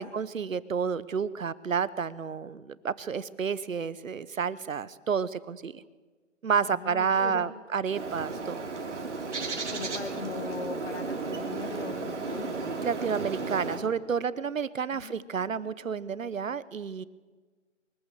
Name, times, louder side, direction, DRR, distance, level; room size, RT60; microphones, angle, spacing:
voice 1, 0.0-5.8 6.4-8.6 12.8-17.0, right 6 dB, 90° right, 17 dB, 1.1 m, -30 dB
voice 2, 6.6-7.5 9.7-12.9 14.9-15.7, left 4 dB, 55° left, 8 dB, 1.4 m, -40 dB
Bird, 7.9-13.8, right 3 dB, 65° right, 2.9 m, -34 dB
23.0 x 15.0 x 7.6 m, 1.4 s
hypercardioid pair, 180°, 38 cm